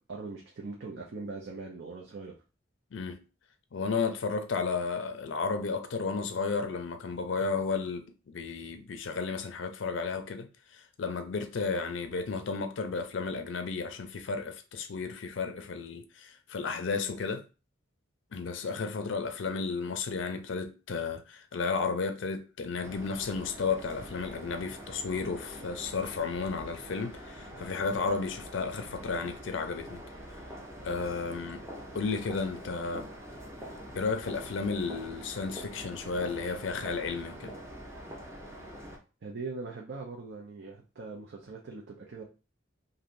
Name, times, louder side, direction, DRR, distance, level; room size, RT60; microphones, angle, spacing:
voice 1, 0.1-2.3 39.2-42.2, right 3 dB, 60° right, 0.6 m, -41 dB
voice 2, 2.9-3.2 3.7-10.5 10.7-17.4 18.3-30.0 30.8-31.6 31.9-33.1 33.9-37.5, left 4 dB, 70° left, 0.5 m, -33 dB
sound 1, 22.8-39.0, equal, 15° right, 0.5 m, -45 dB
3.2 x 2.6 x 2.5 m
head